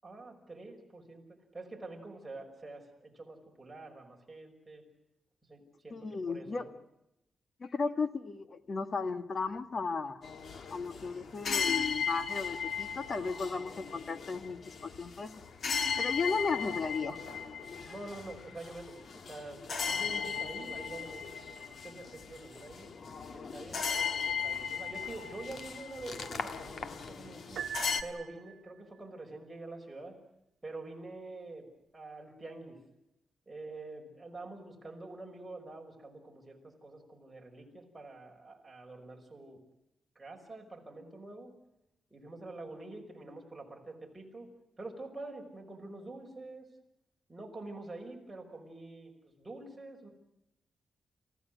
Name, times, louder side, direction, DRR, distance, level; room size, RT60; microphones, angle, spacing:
voice 1, 0.0-1.2 1.5-4.8 5.5-6.0 6.3-6.7 17.8-22.9 23.3-24.0 24.4-27.6 28.0-30.2 30.6-31.7 31.9-32.8 33.5-39.6 40.2-41.5 42.1-44.5 44.8-46.7 47.3-50.1, right 2 dB, 15° right, 0 dB, 5.6 m, -46 dB
voice 2, 5.9-6.6 7.6-10.2 10.7-15.3 16.0-17.2, left 4 dB, 40° left, 10 dB, 1.6 m, -35 dB
sound 1, 10.2-28.0, left 6 dB, 55° left, 1.7 m, -37 dB
Piano, 27.6-28.8, right 8 dB, 80° right, 1.2 m, -41 dB
29.0 x 16.0 x 9.5 m, 0.89 s
wide cardioid pair, 135°, 0 cm